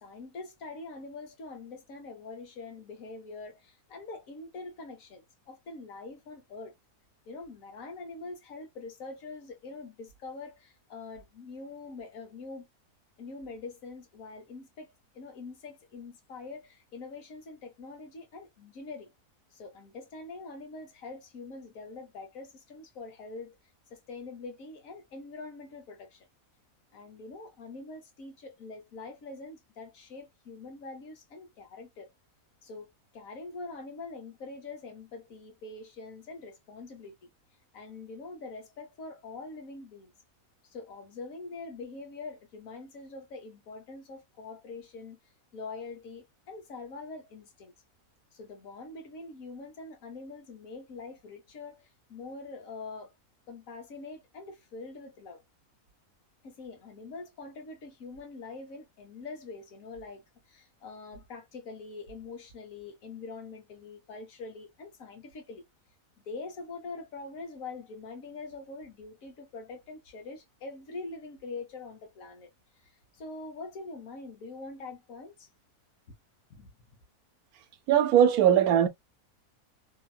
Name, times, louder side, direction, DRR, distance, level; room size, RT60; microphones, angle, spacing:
voice 1, 0.0-6.7 7.2-12.7 13.2-19.1 19.5-23.6 23.9-26.3 26.9-32.1 32.6-32.9 33.1-37.3 37.7-40.1 40.6-45.2 45.5-47.7 48.3-53.1 53.5-55.4 56.4-65.6 66.3-72.5 72.8-75.5 76.5-77.0, left 3 dB, 65° left, 1.3 m, -44 dB
voice 2, 77.9-78.9, right 9 dB, 75° right, 1.1 m, -20 dB
2.8 x 2.8 x 2.2 m
omnidirectional pair, 1.6 m